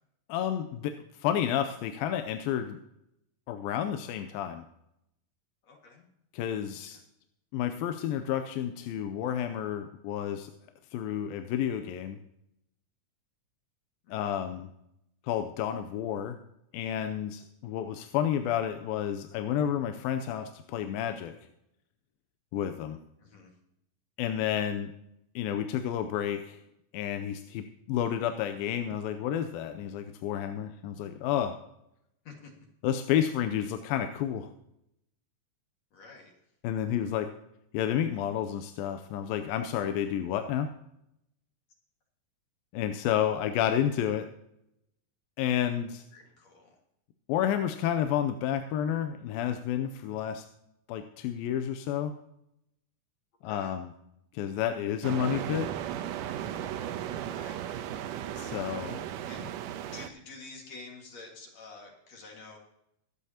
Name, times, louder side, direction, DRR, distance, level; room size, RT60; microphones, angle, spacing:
voice 1, 0.3-2.8 3.5-4.7 6.3-7.0 7.5-10.5 10.9-12.2 14.1-14.7 15.2-16.4 16.7-21.3 22.5-23.0 24.2-24.9 25.4-26.6 26.9-31.6 32.8-34.5 36.6-37.3 37.7-40.7 42.7-44.3 45.4-46.0 47.3-50.5 50.9-52.1 53.4-53.9 54.3-55.7 58.4-59.0, left 10 dB, 85° left, 8 dB, 2.5 m, -30 dB
voice 2, 5.6-6.1 6.6-6.9 14.0-14.4 23.2-23.5 32.2-32.5 35.9-36.3 46.1-46.8 53.4-53.7 57.3-57.7 59.3-62.6, left 3 dB, 55° left, 0 dB, 2.8 m, -49 dB
sound 1, 55.0-60.1, right 10 dB, 80° right, 2.2 m, -36 dB
23.0 x 8.3 x 2.8 m, 0.81 s
omnidirectional pair, 4.0 m